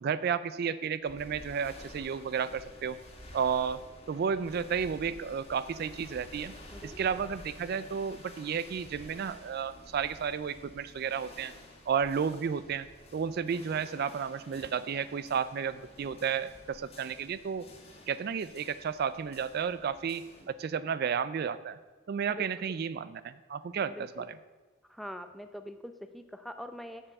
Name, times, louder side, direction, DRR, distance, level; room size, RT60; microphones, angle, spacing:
voice 1, 0.0-3.0 3.3-3.8 4.1-6.5 6.8-11.5 11.9-12.9 13.1-17.7 18.1-21.8 22.1-24.3, right 7 dB, 50° right, 15 dB, 0.3 m, -32 dB
sound 1, 1.0-20.4, left 1 dB, 30° left, 1.8 m, -51 dB
voice 2, 6.7-7.2 22.3-22.5 23.9-24.3 24.9-27.0, equal, ahead, 8 dB, 0.5 m, -44 dB
7.4 x 7.0 x 7.7 m, 1.4 s
head